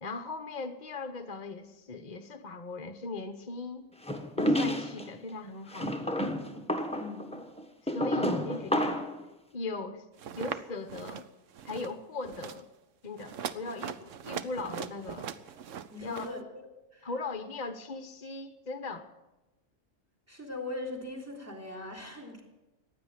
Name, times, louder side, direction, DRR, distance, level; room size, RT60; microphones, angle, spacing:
voice 1, 0.0-3.9 4.4-6.4 7.9-9.1 9.5-10.0 10.4-11.3 11.6-12.7 13.0-15.3 16.0-16.3 17.0-19.1, left 3 dB, 40° left, 9 dB, 0.9 m, -39 dB
sound 1, 4.1-5.1 5.7-9.2, equal, 5° left, 1.2 m, -30 dB
voice 2, 6.9-7.3 15.9-16.6 16.9-17.1 20.3-22.4, left 2 dB, 10° right, 2 dB, 3.3 m, -40 dB
sound 2, 10.2-10.6 10.9-11.2 11.5-11.9 12.2-12.6 13.2-16.3, right 8 dB, 75° right, 1.1 m, -40 dB
15.5 x 10.0 x 9.1 m, 1.0 s
omnidirectional pair, 1.3 m